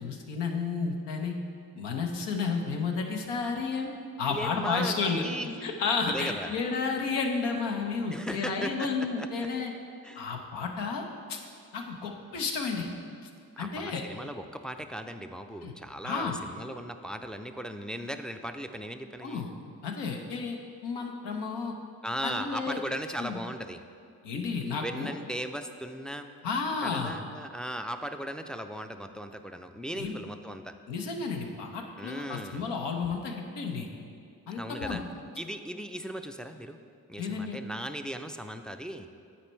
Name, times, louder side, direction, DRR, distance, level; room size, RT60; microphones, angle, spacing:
voice 1, 0.0-1.4 1.8-3.9 4.2-5.2 5.6-9.7 10.2-11.4 11.7-12.9 13.2-13.3 13.6-14.0 15.6-15.7 16.0-16.4 19.2-19.5 19.8-20.6 20.8-21.7 22.2-22.8 23.2-23.4 24.2-25.1 26.4-27.1 30.0-30.2 30.9-33.9 34.5-35.0 37.2-37.6, left 5 dB, 90° left, 2 dB, 0.8 m, -32 dB
voice 2, 4.3-5.7 6.1-6.6 8.1-9.5 10.0-10.3 13.6-19.5 22.0-23.8 24.8-26.3 26.8-30.7 32.0-32.6 34.6-35.0 35.4-36.8 37.1-39.1, equal, ahead, 6 dB, 0.3 m, -37 dB
8.6 x 4.2 x 4.5 m, 2.4 s
supercardioid pair, 50°, 41 cm